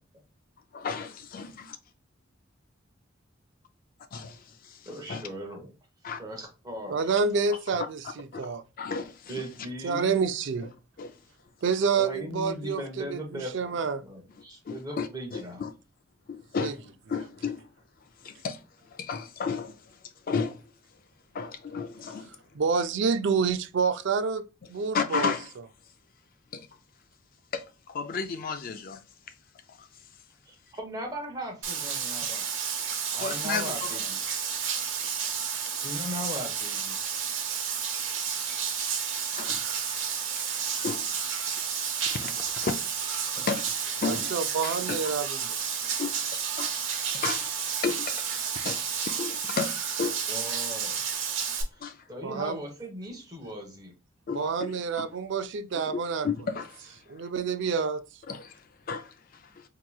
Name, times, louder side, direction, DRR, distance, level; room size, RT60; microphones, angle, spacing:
voice 1, 0.7-1.6 4.1-5.2 6.0-6.2 8.3-8.4 8.8-9.4 11.0-11.1 14.7-15.7 16.3-16.8 17.1-17.7 18.2-18.6 18.9-20.0 20.3-20.6 21.3-22.3 24.9-25.5 26.5-26.7 27.5-29.0 29.8-29.9 33.2-33.9 39.4-39.7 40.3-41.1 41.8-42.8 43.3-44.3 44.6-45.0 46.0-50.2 51.8-52.0 54.3-54.8 55.9-57.3 58.3-59.7, left 5 dB, 45° left, 0.4 m, -34 dB
voice 2, 4.9-5.7 6.2-7.1 9.3-10.2 12.0-15.6 30.5-32.5 33.2-34.2 35.8-37.0 50.3-51.3 51.7-53.9, equal, 20° right, 1.0 m, -38 dB
voice 3, 6.9-8.6 9.8-10.7 11.6-14.0 16.6-16.7 22.5-24.4 24.7-25.3 44.0-45.8 52.2-52.6 54.3-56.3 57.1-58.0, right 5 dB, 65° right, 0.4 m, -28 dB
Bathtub (filling or washing), 31.6-51.6, right 7 dB, 80° right, 0.9 m, -31 dB
4.6 x 2.9 x 2.3 m
head